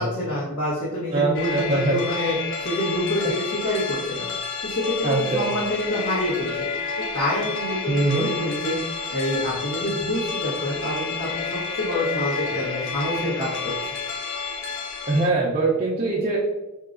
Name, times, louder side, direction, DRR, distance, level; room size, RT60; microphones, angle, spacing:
voice 1, 0.0-4.3 4.6-6.5 7.1-8.8 9.1-13.7, left 1 dB, 85° left, -9 dB, 1.3 m, -27 dB
voice 2, 1.1-2.0 5.0-5.5 7.9-8.3 15.1-16.4, right 3 dB, 30° right, -5 dB, 0.6 m, -22 dB
sound 1, 1.3-15.3, left 5 dB, 55° left, 0.5 m, -30 dB
5.6 x 2.8 x 2.5 m, 1.0 s
head